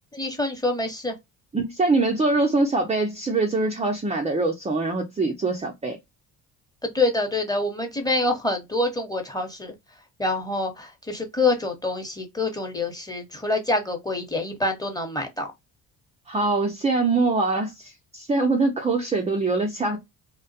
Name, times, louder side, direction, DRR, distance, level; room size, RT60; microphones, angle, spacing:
voice 1, 0.1-1.1 6.8-9.7 10.2-15.5, left 2 dB, 10° left, 0.9 m, -26 dB
voice 2, 1.5-6.0 16.3-20.0, right 3 dB, 15° right, 0.4 m, -23 dB
2.3 x 2.1 x 2.6 m
supercardioid pair, 60°, 47 cm